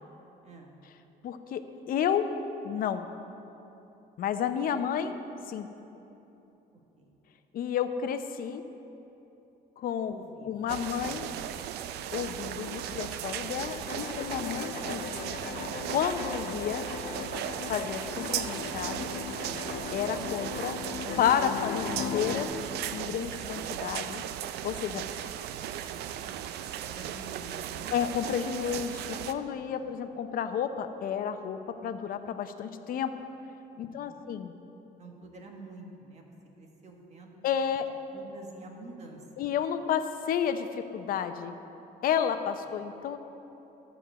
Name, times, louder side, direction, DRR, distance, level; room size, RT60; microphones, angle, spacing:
voice 1, 0.4-0.8 7.0-7.2 10.1-10.7 26.5-27.9 29.6-29.9 33.9-34.3 35.0-37.4 38.1-39.5, right 3 dB, 40° right, 1 dB, 1.6 m, -48 dB
voice 2, 1.2-2.3 2.6-3.1 4.2-5.2 5.5-5.7 7.5-8.6 9.8-10.1 10.5-11.3 12.1-15.0 15.9-16.9 17.7-19.1 19.9-20.8 21.2-22.5 22.9-24.2 24.6-25.0 27.9-33.1 33.8-34.5 37.4-37.9 39.4-41.5 42.0-43.2, left 8 dB, 60° left, 9 dB, 0.7 m, -31 dB
sound 1, 10.7-29.3, right 10 dB, 75° right, 0.5 m, -37 dB
sound 2, 13.7-22.4, left 6 dB, 75° left, 0.9 m, -37 dB
13.0 x 4.5 x 8.0 m, 3.0 s
cardioid pair, 110°, 17 cm